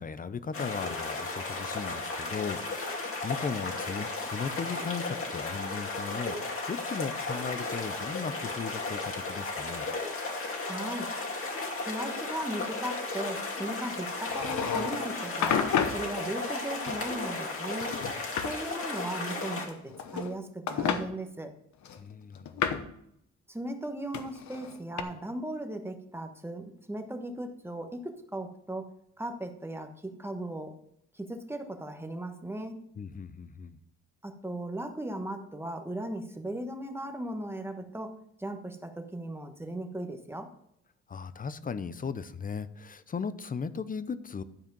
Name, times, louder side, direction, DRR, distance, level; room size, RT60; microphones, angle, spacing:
voice 1, 0.0-9.9 22.0-22.8 33.0-33.8 41.1-44.4, left 5 dB, 30° left, 14 dB, 0.7 m, -37 dB
sound 1, 0.5-19.7, left 3 dB, 45° left, 2.6 m, -35 dB
voice 2, 10.6-11.1 11.8-18.0 18.4-21.5 23.5-30.7 31.1-32.8 34.2-40.5, right 1 dB, 10° right, 5 dB, 1.2 m, -37 dB
sound 2, 14.2-15.1 15.4-16.0 16.8-17.5 17.8-18.5 19.7-20.4 20.7-21.0 21.9-22.9 24.1-25.0, left 7 dB, 70° left, 1.0 m, -31 dB
12.0 x 4.9 x 5.4 m, 0.74 s
cardioid pair, 90°, 30 cm